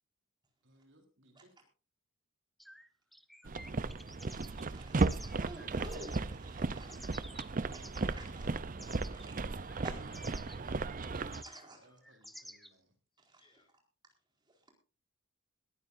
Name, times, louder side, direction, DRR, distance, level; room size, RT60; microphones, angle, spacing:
voice 1, 0.6-1.6 11.7-12.9, right 1 dB, 60° right, 3 dB, 3.6 m, -65 dB
sound 1, 2.6-6.2 6.6-8.2 8.8-9.3 9.7-12.7, equal, ahead, 0.8 m, -53 dB
sound 2, 3.5-11.4, right 3 dB, 40° right, 0.6 m, -35 dB
voice 2, 3.9-7.0 7.6-8.5 8.8-9.3 9.8-10.0 11.2-11.8 13.3-13.4, right 1 dB, 20° right, 1 dB, 4.4 m, -51 dB
voice 3, 8.0-8.7 9.0-12.1 13.3-13.7, left 2 dB, 25° left, 4 dB, 5.1 m, -66 dB
21.5 x 14.5 x 2.6 m, 0.33 s
head